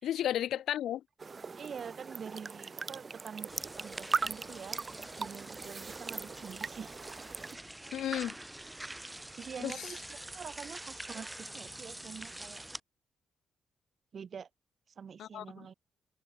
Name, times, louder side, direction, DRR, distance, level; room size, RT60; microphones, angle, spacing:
voice 1, 0.0-1.0 7.9-8.4 9.6-9.9 15.2-15.7, left 11 dB, 85° left, 0.5 m, -33 dB
sound 1, 1.2-7.6, right 4 dB, 30° right, 1.6 m, -39 dB
voice 2, 1.6-4.8 5.2-6.9 9.4-12.6 14.1-14.5 15.0-15.7, right 7 dB, 45° right, 1.0 m, -46 dB
sound 2, 3.5-12.8, right 1 dB, 10° right, 2.0 m, -46 dB
cardioid pair, 135°, 0 cm